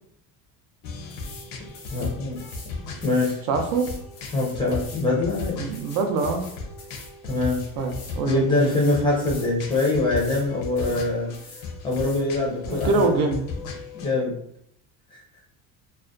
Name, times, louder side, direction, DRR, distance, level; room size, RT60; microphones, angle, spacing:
sound 1, 0.8-14.1, left 3 dB, 60° left, 0.6 m, -37 dB
sound 2, 1.1-1.5 1.7-2.7 3.0-8.2 8.5-10.5 10.8-11.1 11.3-12.2 12.7-13.1, left 4 dB, 90° left, 0.9 m, -45 dB
voice 1, 1.9-2.4 3.0-3.4 4.3-5.6 7.2-7.6 8.2-11.3 11.8-13.1 13.9-14.3 15.1-15.2, left 2 dB, 15° left, -4 dB, 0.5 m, -23 dB
voice 2, 3.5-3.9 5.6-6.5 7.8-8.7 12.7-13.4, right 3 dB, 60° right, 4 dB, 0.5 m, -24 dB
2.3 x 2.1 x 2.5 m, 0.71 s
cardioid pair, 150°, 38 cm